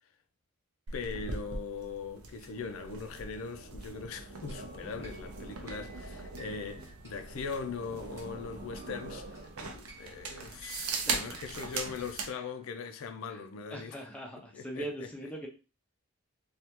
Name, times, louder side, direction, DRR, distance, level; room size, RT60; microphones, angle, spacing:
voice 1, 0.9-14.0 14.5-15.3, left 5 dB, 70° left, 0.4 m, -40 dB
sound 1, 0.9-12.3, right 4 dB, 85° right, 0.6 m, -40 dB
sound 2, 4.5-12.8, right 4 dB, 15° right, 0.8 m, -56 dB
voice 2, 5.0-5.6 11.1-11.2 13.3-13.4 13.7-15.5, right 1 dB, 5° left, 0.4 m, -41 dB
3.3 x 2.3 x 2.9 m
head